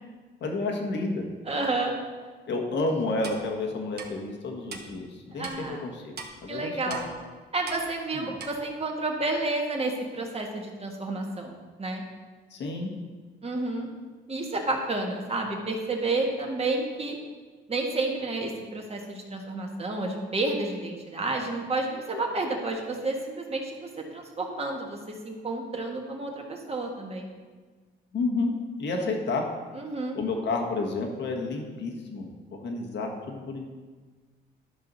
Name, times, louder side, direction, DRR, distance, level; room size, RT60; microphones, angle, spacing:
voice 1, 0.4-1.2 2.5-6.2 6.4-7.0 8.1-8.4 12.5-12.9 28.1-28.5 28.8-29.5 30.1-33.7, left 3 dB, 65° left, 2 dB, 1.5 m, -30 dB
voice 2, 1.5-2.0 5.3-5.9 6.5-7.1 7.5-11.5 11.8-12.0 13.4-13.9 14.3-17.2 17.7-27.3 28.9-29.1 29.7-30.2, right 2 dB, 30° right, 1 dB, 1.7 m, -30 dB
Clock, 3.2-3.4 4.0-4.1 4.7-4.8 5.4-5.6 6.2-6.3 6.9-7.1 7.7-7.8 8.4-8.5, right 5 dB, 55° right, 1.1 m, -38 dB
11.5 x 5.6 x 4.1 m, 1.4 s
cardioid pair, 90°, 20 cm